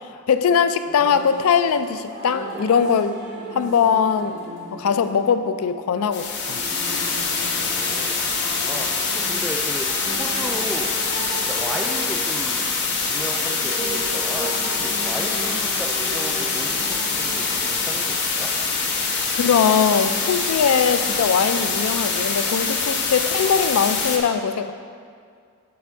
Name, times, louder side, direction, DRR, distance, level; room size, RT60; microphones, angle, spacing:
voice 1, 0.3-3.2 3.5-4.4 4.7-6.6 19.4-24.7, left 6 dB, 75° left, 11 dB, 0.4 m, -20 dB
sound 1, 0.8-18.7 19.9-20.0, right 1 dB, 55° right, 1.7 m, -37 dB
sound 2, 6.1-24.2, left 4 dB, 55° left, 1.0 m, -24 dB
voice 2, 7.5-8.4 8.6-12.7 13.0-18.5, equal, 5° right, -2 dB, 0.3 m, -35 dB
8.7 x 3.5 x 6.0 m, 2.2 s
head